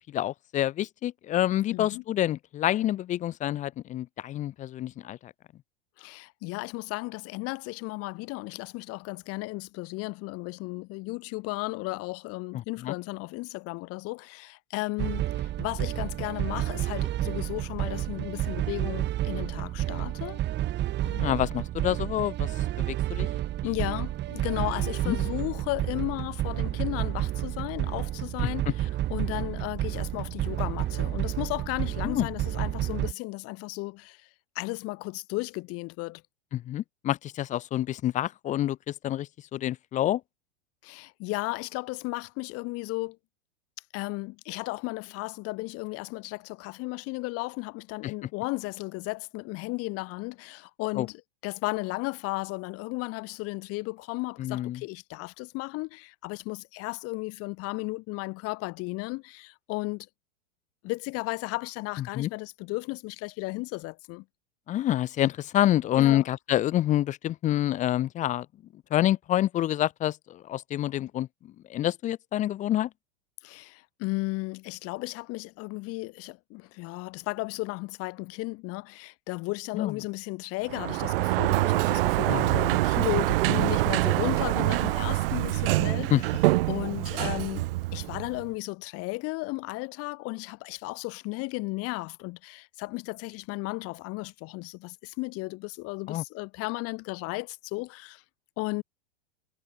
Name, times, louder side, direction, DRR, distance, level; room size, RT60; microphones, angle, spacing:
voice 1, 0.1-5.3 12.5-12.9 21.0-22.5 22.8-23.3 25.1-25.2 32.0-32.3 36.5-40.2 48.0-48.1 51.0-51.1 54.4-54.8 62.2-62.3 64.7-68.5 68.9-71.3 71.7-72.9 79.7-79.9 82.3-82.6 86.1-86.2 96.1-96.2, left 13 dB, 25° left, 0.5 m, -27 dB
voice 2, 1.7-2.0 6.0-20.4 23.6-34.3 34.5-36.2 40.8-43.2 43.9-60.1 60.8-64.2 66.0-66.3 73.4-86.2 86.7-87.7 87.9-98.2 98.6-98.8, left 24 dB, 45° left, 2.8 m, -34 dB
sound 1, 15.0-33.1, right 13 dB, 35° right, 1.8 m, -30 dB
Sliding door, 80.7-88.5, right 19 dB, 60° right, 0.8 m, -25 dB
hypercardioid pair, 95°, 33 cm